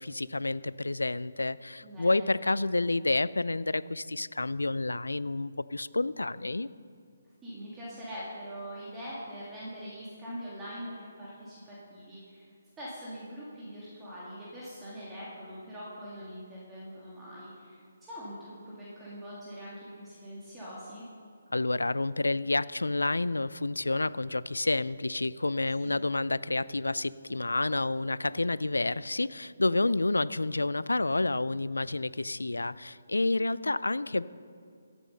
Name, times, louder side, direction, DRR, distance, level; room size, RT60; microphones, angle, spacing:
voice 1, 0.0-6.7 21.5-34.2, left 2 dB, 85° left, 19 dB, 0.3 m, -29 dB
voice 2, 1.8-2.3 7.4-12.5 12.8-21.0 25.8-26.0, equal, 10° right, -9 dB, 2.5 m, -43 dB
14.5 x 8.3 x 5.4 m, 2.2 s
figure-of-eight pair, 145°, 0 cm